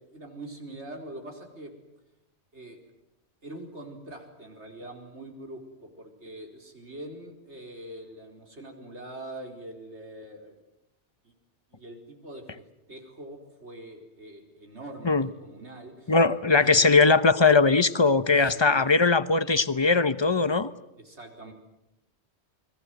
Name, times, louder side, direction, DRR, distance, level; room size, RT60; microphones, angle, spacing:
voice 1, 0.1-1.7 2.5-2.9 3.4-10.6 11.2-11.3 11.7-16.2 16.6-17.0 18.3-18.9 21.0-21.5, right 1 dB, 80° right, 3 dB, 4.9 m, -43 dB
voice 2, 16.1-20.7, left 4 dB, 25° left, 13 dB, 1.0 m, -20 dB
29.5 x 22.0 x 8.0 m, 0.89 s
omnidirectional pair, 1.1 m